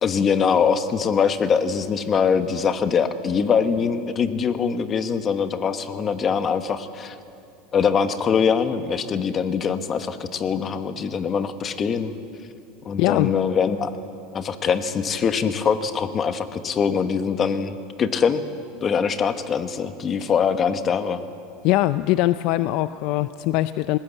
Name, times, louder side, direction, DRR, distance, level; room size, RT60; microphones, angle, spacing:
voice 1, 0.0-7.2 7.7-12.1 12.8-13.9 14.3-18.4 18.8-21.2, left 6 dB, 25° left, 10 dB, 1.1 m, -23 dB
voice 2, 13.0-13.3 20.2-20.3 21.6-24.0, left 16 dB, 55° left, 13 dB, 0.5 m, -22 dB
20.5 x 19.5 x 8.1 m, 2.6 s
supercardioid pair, 140°, 0 cm